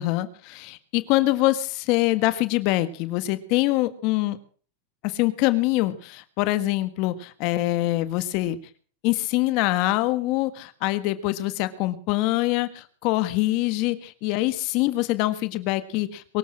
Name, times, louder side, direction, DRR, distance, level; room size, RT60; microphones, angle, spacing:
voice 1, 0.0-4.4 5.0-8.6 9.0-16.4, left 17 dB, 55° left, 12 dB, 1.6 m, -24 dB
23.0 x 8.1 x 7.7 m, 0.43 s
hypercardioid pair, 115°, 0 cm